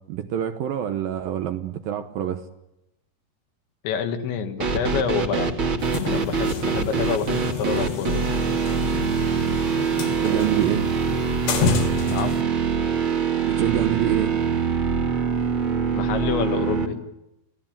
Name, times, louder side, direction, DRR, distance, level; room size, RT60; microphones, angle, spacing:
voice 1, 0.1-2.4 6.7-6.9 10.2-10.9 13.5-14.3, right 11 dB, 70° right, 8 dB, 2.4 m, -26 dB
voice 2, 3.8-5.5 6.1-8.3 12.1-12.4 15.9-17.0, left 7 dB, 85° left, 6 dB, 4.1 m, -27 dB
sound 1, 4.6-16.9, right 5 dB, 40° right, 2.0 m, -24 dB
sound 2, 5.8-12.4, left 5 dB, 70° left, 4.5 m, -30 dB
28.5 x 17.5 x 8.9 m, 0.89 s
omnidirectional pair, 5.1 m